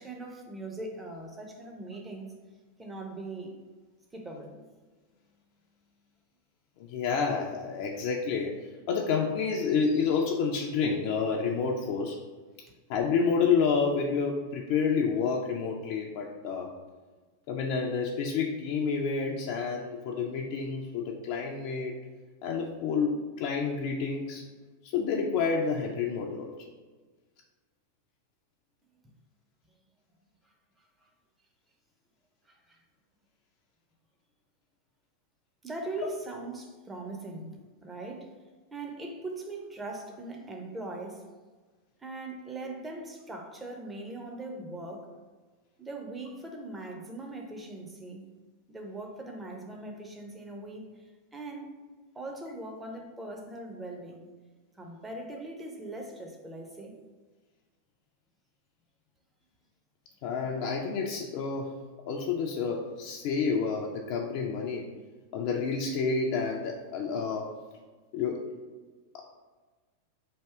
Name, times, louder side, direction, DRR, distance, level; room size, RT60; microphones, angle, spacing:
voice 1, 0.0-2.3 2.8-3.6 4.1-4.6 30.8-31.1 32.5-32.8 35.6-37.6 37.8-38.4 38.7-41.3 42.0-45.1 45.8-48.3 48.7-51.0 51.3-51.8 52.1-54.3 54.7-57.0, right 2 dB, 10° right, 2 dB, 0.6 m, -40 dB
voice 2, 6.8-12.2 12.9-16.7 17.5-22.0 22.4-24.4 24.8-26.5 60.2-61.7 62.1-64.9 65.3-67.5 68.1-68.5, left 5 dB, 45° left, 0 dB, 0.4 m, -29 dB
3.5 x 2.6 x 4.5 m, 1.3 s
figure-of-eight pair, 90°, 0 cm